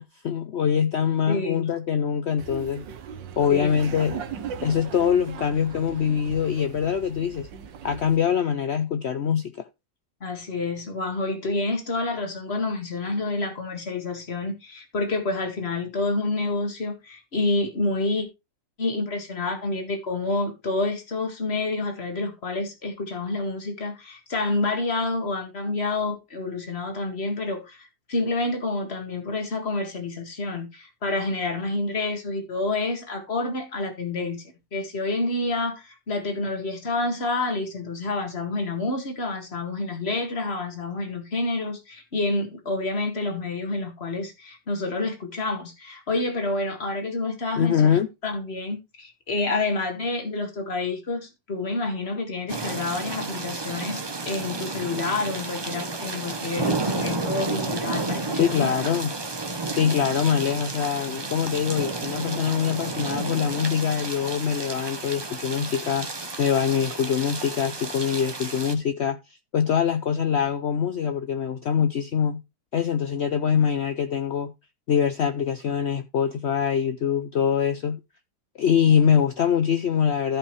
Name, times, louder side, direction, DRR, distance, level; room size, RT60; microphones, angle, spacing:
voice 1, 0.0-2.8 3.4-4.2 4.6-7.5 7.8-9.6 47.6-48.1 58.3-59.1 59.7-69.2 69.5-72.4 72.7-74.5 74.9-78.0 78.6-80.4, left 8 dB, 70° left, 0.6 m, -24 dB
voice 2, 1.3-1.7 3.5-3.7 10.2-18.3 18.8-34.4 34.7-47.8 48.2-54.0 54.3-58.7, left 2 dB, 35° left, 2.2 m, -28 dB
Laughter, 2.4-8.2, right 7 dB, 85° right, 1.6 m, -38 dB
sound 1, 52.5-68.7, right 3 dB, 25° right, 0.5 m, -31 dB
14.5 x 5.5 x 3.3 m
omnidirectional pair, 1.9 m